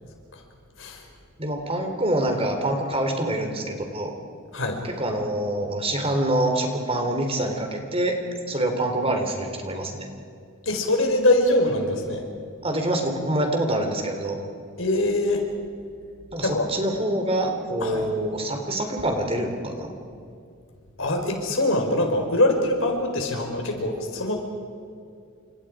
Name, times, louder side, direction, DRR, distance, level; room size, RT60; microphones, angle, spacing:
voice 1, 1.4-4.1 4.8-8.2 8.5-10.1 12.6-14.4 16.3-19.9, right 1 dB, 30° right, 4 dB, 3.7 m, -26 dB
voice 2, 10.6-12.2 14.8-15.4 16.4-16.7 17.8-18.1 21.0-24.4, left 1 dB, 70° left, 3 dB, 4.8 m, -23 dB
30.0 x 27.0 x 5.1 m, 2.4 s
head